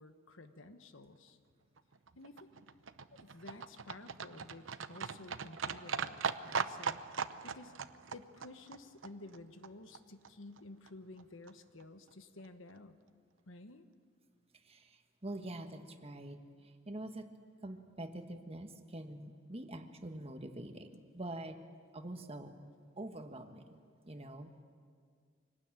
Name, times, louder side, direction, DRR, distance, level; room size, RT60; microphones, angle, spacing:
voice 1, 0.0-1.4 2.1-2.5 3.1-7.0 7.4-7.7 8.1-13.0 13.5-13.9, left 2 dB, 90° left, 9 dB, 1.3 m, -53 dB
Livestock farm animals working animals, 1.8-10.0 10.2-10.3 10.6-10.7 10.9-11.0 11.2-11.3 11.5-11.6 11.8-11.9 12.1-12.2 12.4-12.5, right 5 dB, 85° right, 0.8 m, -40 dB
voice 2, 14.5-17.3 17.6-21.6 21.9-22.5 23.0-23.8 24.0-24.6, right 1 dB, 30° right, 6 dB, 1.5 m, -45 dB
25.0 x 19.0 x 9.0 m, 2.1 s
head